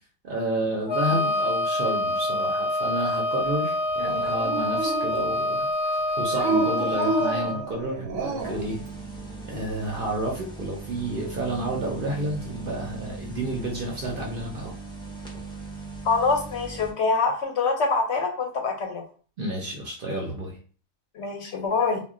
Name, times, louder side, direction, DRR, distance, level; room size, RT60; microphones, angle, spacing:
voice 1, 0.2-8.8 9.5-14.8 19.4-20.6, right 1 dB, 55° right, -1 dB, 0.6 m, -30 dB
Wind instrument woodwind instrument, 0.9-7.6, left 1 dB, 25° left, 0.8 m, -26 dB
Dog, 4.0-5.5 6.3-8.7, right 3 dB, 80° right, 1.0 m, -29 dB
sound 1, 8.4-16.9, right 2 dB, 5° left, 0.4 m, -39 dB
voice 2, 16.0-19.0 21.1-22.0, left 4 dB, 65° left, 2 dB, 0.8 m, -25 dB
2.2 x 2.1 x 3.6 m, 0.40 s
omnidirectional pair, 1.4 m